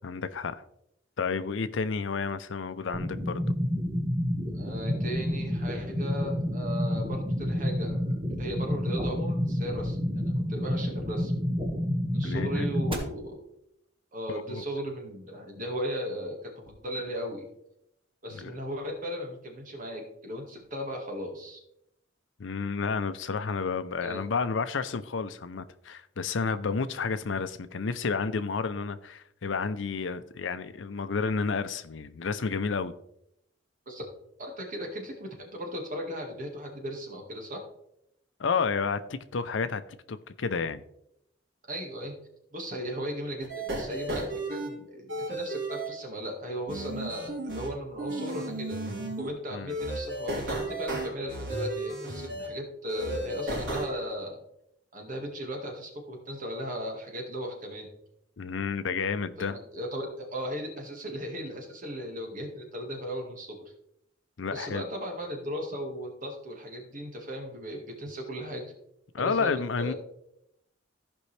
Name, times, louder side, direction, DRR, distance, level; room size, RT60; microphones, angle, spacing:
voice 1, 0.0-0.6 1.2-3.6 12.2-12.7 14.3-14.6 18.3-18.5 22.4-32.9 38.4-39.8 40.1-40.8 49.5-49.7 58.4-59.6 64.4-64.8 69.1-69.9, left 5 dB, 85° left, 0.6 m, -31 dB
sound 1, 2.9-12.9, equal, 30° right, 1.6 m, -29 dB
voice 2, 4.5-11.3 12.1-13.4 14.1-17.5 18.2-21.6 24.0-24.2 33.9-34.0 34.4-37.6 41.7-42.2 42.5-48.8 49.2-54.4 54.9-57.9 59.4-63.6 64.5-68.6 69.2-69.9, equal, 45° right, 1.8 m, -36 dB
sound 2, 43.4-44.7 45.1-45.9 46.7-47.7 48.0-49.3 49.7-52.5 52.9-53.9, right 1 dB, 70° right, 3.5 m, -34 dB
15.0 x 5.3 x 3.3 m
head